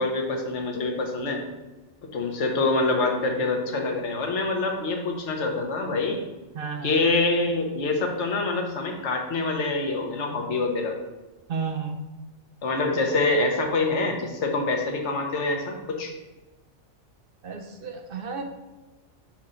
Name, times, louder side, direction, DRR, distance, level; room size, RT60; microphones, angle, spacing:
voice 1, 0.0-1.4 2.1-6.2 6.8-10.9 12.6-16.1, left 3 dB, 70° left, 2 dB, 1.2 m, -25 dB
voice 2, 6.5-6.9 11.5-12.0 17.4-18.4, right 5 dB, 60° right, 4 dB, 0.7 m, -32 dB
5.9 x 3.8 x 4.3 m, 1.1 s
omnidirectional pair, 1.3 m